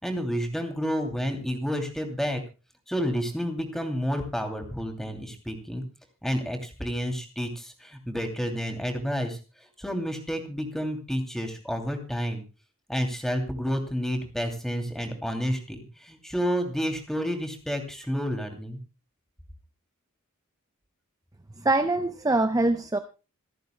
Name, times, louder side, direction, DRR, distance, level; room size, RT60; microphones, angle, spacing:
voice 1, 0.0-2.4 2.9-5.8 6.2-9.4 9.8-12.4 12.9-18.8, equal, ahead, 5 dB, 2.7 m, -30 dB
voice 2, 21.6-23.0, right 2 dB, 15° right, 9 dB, 0.6 m, -24 dB
27.0 x 9.2 x 2.2 m, 0.32 s
head